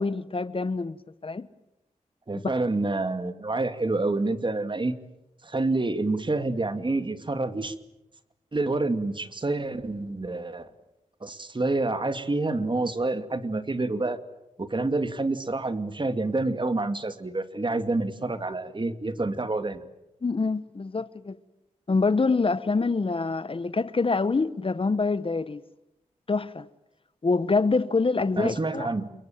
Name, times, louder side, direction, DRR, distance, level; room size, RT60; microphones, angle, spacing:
voice 1, 0.0-1.5 2.3-2.4 20.2-21.4 21.9-25.6 26.3-26.7 27.2-28.9, left 4 dB, 40° left, 1.1 m, -26 dB
voice 2, 2.3-5.0 5.4-7.7 8.5-10.7 11.2-14.2 14.6-19.8 28.4-29.1, right 2 dB, 35° right, 2.4 m, -28 dB
28.5 x 22.5 x 9.0 m
cardioid pair, 55°, 14 cm